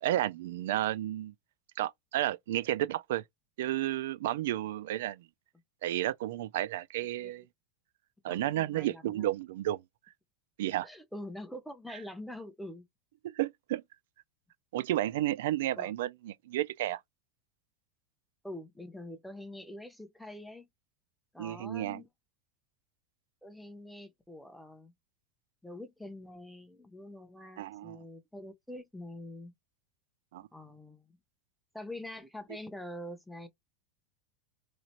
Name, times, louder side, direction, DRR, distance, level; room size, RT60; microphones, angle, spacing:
voice 1, 0.0-1.3 1.8-3.2 3.6-5.2 5.8-7.4 8.2-9.8 10.6-10.9 13.2-13.8 14.7-17.0 21.4-22.0 27.6-28.0 30.3-30.5, right 14 dB, 70° right, 0.3 m, -32 dB
voice 2, 7.0-7.5 8.3-9.3 10.8-12.9 15.8-15.9 18.4-20.7 21.3-22.1 23.4-24.9 25.6-29.5 30.5-31.2 31.7-33.5, left 1 dB, ahead, 0.6 m, -45 dB
3.0 x 2.4 x 4.2 m
supercardioid pair, 175°, 0 cm